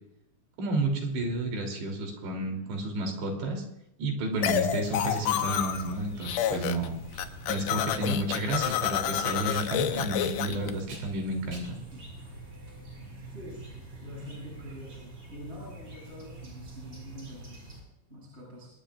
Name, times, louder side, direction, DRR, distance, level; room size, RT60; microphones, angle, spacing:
voice 1, 0.6-3.6 4.0-6.9 7.5-11.8, right 2 dB, 75° right, 2 dB, 5.4 m, -31 dB
voice 2, 2.3-2.8 11.9-12.0 13.0-17.7 18.1-18.7, left 1 dB, 15° right, -4 dB, 7.7 m, -46 dB
sound 1, 4.3-17.8, right 2 dB, 30° right, 6.0 m, -45 dB
sound 2, 4.4-5.9 6.2-6.9 7.1-10.7, left 10 dB, 85° left, 1.8 m, -29 dB
Packing tape duct tape, 6.0-13.3, right 3 dB, 50° right, 5.0 m, -50 dB
26.0 x 21.0 x 2.5 m, 0.81 s
omnidirectional pair, 5.0 m